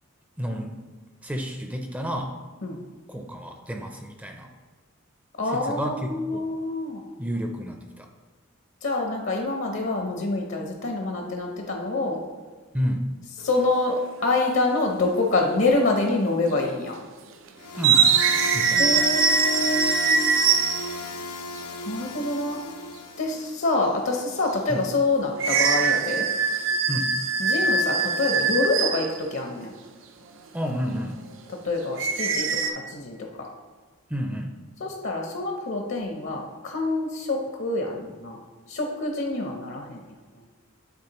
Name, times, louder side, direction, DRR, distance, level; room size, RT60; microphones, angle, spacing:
voice 1, 0.4-0.8 1.2-2.4 3.1-4.5 5.5-6.4 7.2-8.1 12.7-13.0 17.8-18.1 18.5-19.1 24.7-24.8 26.9-27.2 30.5-31.2 34.1-34.5, equal, 5° right, 3 dB, 0.4 m, -30 dB
voice 2, 5.4-7.0 8.8-12.2 13.4-17.0 18.8-20.2 21.9-22.6 23.2-26.3 27.4-29.7 31.5-33.5 34.8-38.4 38.7-40.0 40.3-40.4, left 2 dB, 60° left, 2 dB, 0.8 m, -26 dB
sound 1, 13.4-13.7 14.9-15.0 16.0-16.4 16.6-16.8 17.8-21.0 25.4-29.2 32.0-32.7, right 5 dB, 60° right, 0.5 m, -22 dB
sound 2, 17.6-23.4, left 2 dB, 90° left, 0.5 m, -35 dB
9.5 x 4.1 x 3.0 m, 1.4 s
head